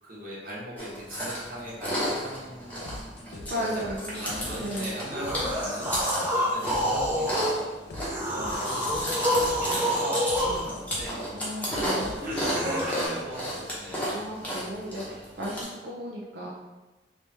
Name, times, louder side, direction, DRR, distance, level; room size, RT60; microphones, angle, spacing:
voice 1, 0.0-3.7 4.2-8.8 9.2-11.5 11.9-14.2, right 1 dB, 50° right, -6 dB, 1.0 m, -39 dB
Chewing mastication, 0.8-15.6, equal, 10° left, 0.8 m, -34 dB
sound 1, 2.8-12.9, left 2 dB, 65° left, 0.4 m, -42 dB
voice 2, 3.5-5.0 11.3-13.1 14.1-16.5, equal, 85° right, -4 dB, 0.5 m, -35 dB
sound 2, 5.1-7.6 8.0-10.6 12.2-13.1, equal, 15° right, 0.5 m, -28 dB
3.1 x 2.8 x 3.3 m, 1.1 s
head